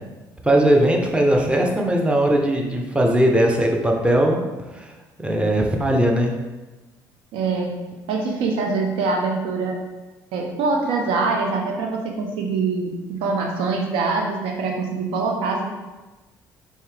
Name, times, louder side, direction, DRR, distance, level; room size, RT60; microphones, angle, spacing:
voice 1, 0.4-4.4 4.7-4.9 5.2-6.3, right 1 dB, 10° right, 1 dB, 0.7 m, -19 dB
voice 2, 7.3-7.8 8.1-9.8 10.3-15.7, right 4 dB, 75° right, 1 dB, 0.6 m, -24 dB
4.5 x 2.8 x 3.3 m, 1.2 s
hypercardioid pair, 60°, 9 cm